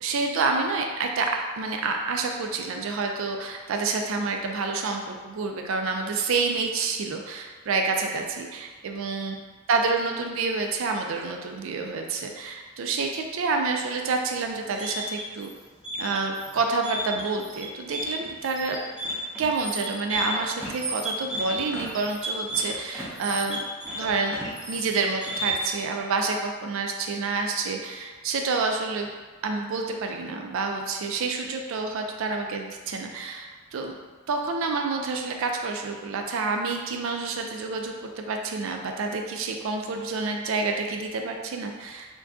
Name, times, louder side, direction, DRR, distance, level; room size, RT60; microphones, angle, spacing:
voice 1, 0.0-9.3 9.7-15.5 16.0-18.8 19.4-23.6 23.9-24.4 24.7-29.1 29.4-33.9 34.3-42.1, right 4 dB, 65° right, 3 dB, 0.4 m, -28 dB
sound 1, 14.5-25.8, right 1 dB, 5° right, 0.6 m, -33 dB
2.5 x 2.2 x 3.4 m, 1.4 s
head